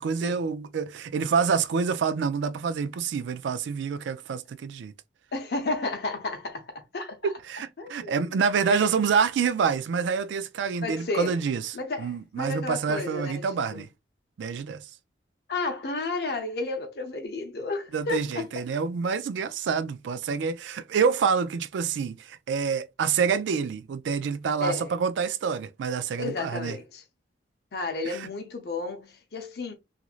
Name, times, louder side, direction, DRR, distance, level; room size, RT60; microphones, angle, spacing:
voice 1, 0.0-4.9 7.2-11.6 12.0-13.9 14.4-14.9 17.9-26.8 28.1-28.3, right 6 dB, 80° right, 0.3 m, -27 dB
voice 2, 5.3-7.3 7.8-8.4 8.7-8.9 10.8-11.4 11.7-13.4 13.7-13.8 15.5-18.5 24.6-24.9 26.2-27.0 27.7-29.7, left 3 dB, 60° left, 0.6 m, -32 dB
3.0 x 2.4 x 2.4 m
head